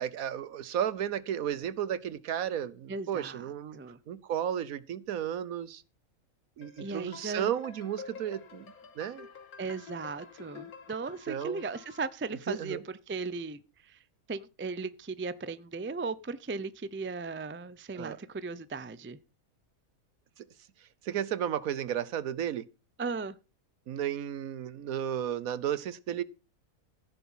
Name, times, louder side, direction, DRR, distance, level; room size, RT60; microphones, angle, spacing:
voice 1, 0.0-3.8 4.1-5.8 6.6-9.3 11.3-11.6 12.5-12.8 17.9-18.2 20.4-20.5 21.0-22.7 23.9-26.2, right 10 dB, 75° right, 1.2 m, -33 dB
voice 2, 2.9-4.0 6.8-7.5 9.6-14.0 14.3-19.2 23.0-23.4, right 4 dB, 20° right, 0.3 m, -37 dB
sound 1, 6.6-12.1, left 6 dB, 85° left, 1.9 m, -49 dB
15.5 x 7.2 x 5.6 m
omnidirectional pair, 1.5 m